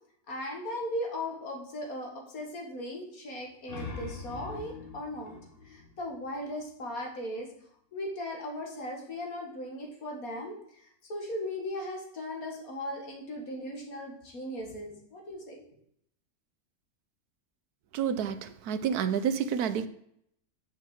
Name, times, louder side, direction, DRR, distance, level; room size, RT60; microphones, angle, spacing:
voice 1, 0.3-5.4 5.7-7.5 7.9-10.8 11.1-15.6, left 1 dB, 65° left, 1 dB, 2.3 m, -37 dB
sound 1, 3.4-6.8, left 4 dB, 40° left, 1.2 m, -43 dB
voice 2, 17.9-19.9, right 7 dB, 80° right, 11 dB, 1.2 m, -29 dB
6.6 x 6.4 x 7.0 m, 0.69 s
omnidirectional pair, 1.7 m